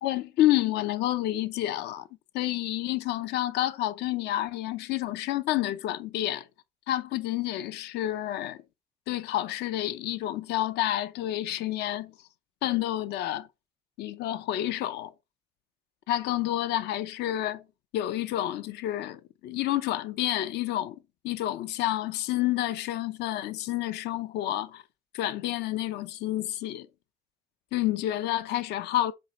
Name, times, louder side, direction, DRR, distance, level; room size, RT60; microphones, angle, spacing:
voice 1, 0.0-2.1 2.3-6.5 6.9-8.6 9.1-12.1 12.6-13.5 14.0-15.1 16.1-17.6 17.9-21.0 21.2-24.8 25.1-26.9 27.7-29.1, left 14 dB, 80° left, 0.7 m, -29 dB
7.8 x 3.3 x 4.3 m
cardioid pair, 110°, 17 cm